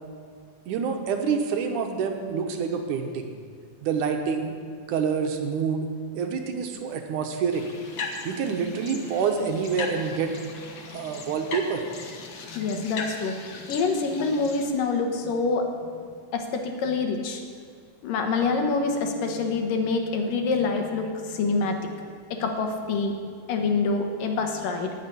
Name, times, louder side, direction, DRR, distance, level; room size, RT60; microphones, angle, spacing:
voice 1, 0.7-3.3 3.8-4.6 4.9-5.9 6.1-7.7 8.2-10.3 10.9-11.8, right 6 dB, 70° right, 4 dB, 2.4 m, -27 dB
sound 1, 7.5-14.7, left 4 dB, 60° left, 1.3 m, -38 dB
voice 2, 12.5-15.7 15.9-16.0 16.3-17.4 18.0-23.1 23.5-24.9, left 4 dB, 85° left, 4 dB, 2.9 m, -26 dB
14.5 x 6.8 x 9.9 m, 2.1 s
omnidirectional pair, 3.8 m